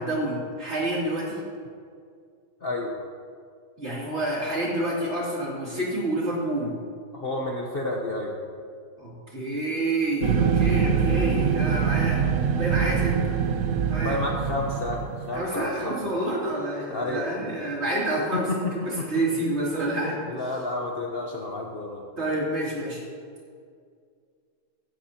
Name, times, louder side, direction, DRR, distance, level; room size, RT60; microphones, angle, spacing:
voice 1, 0.0-1.4 3.8-6.7 9.0-13.4 13.9-14.2 15.3-20.3 22.2-23.0, right 1 dB, 35° right, -6 dB, 3.3 m, -28 dB
voice 2, 2.6-2.9 7.1-8.3 13.9-16.0 16.9-17.3 18.3-18.6 20.3-22.0, left 2 dB, 40° left, -1 dB, 1.0 m, -30 dB
sound 1, 10.2-15.4, right 7 dB, 65° right, 1.0 m, -24 dB
16.5 x 12.5 x 2.9 m, 2.2 s
omnidirectional pair, 2.0 m